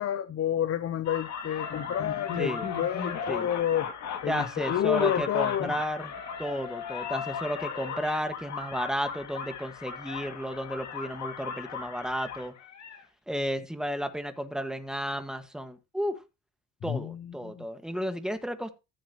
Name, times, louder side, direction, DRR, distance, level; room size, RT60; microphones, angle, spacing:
voice 1, 0.0-3.9 4.2-5.7 16.8-17.7, left 10 dB, 50° left, 0.8 m, -29 dB
sound 1, 1.1-13.0, left 7 dB, 65° left, 2.3 m, -37 dB
voice 2, 4.3-6.1 6.4-12.5 13.3-16.2 16.8-18.7, equal, ahead, 1.7 m, -33 dB
14.5 x 7.2 x 3.0 m
cardioid pair, 90°, 30 cm